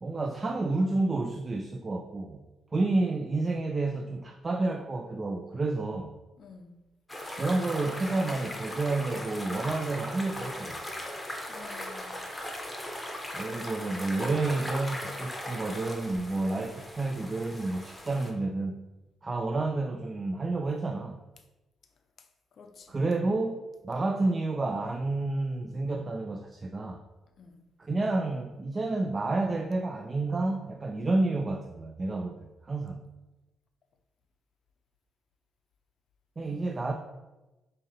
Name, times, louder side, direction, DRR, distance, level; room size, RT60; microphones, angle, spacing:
voice 1, 0.0-2.5 2.7-6.1 7.3-10.8 13.3-18.7 19.2-21.2 22.9-27.0 27.8-33.0 36.4-36.9, right 2 dB, 30° right, 0.3 m, -30 dB
voice 2, 6.4-6.8 11.5-12.2 22.6-22.9 27.4-27.6 36.4-36.7, left 4 dB, 55° left, 0.5 m, -50 dB
sound 1, 7.1-18.3, left 1 dB, 10° left, 0.8 m, -38 dB
5.3 x 2.6 x 2.7 m
cardioid pair, 90°, 0 cm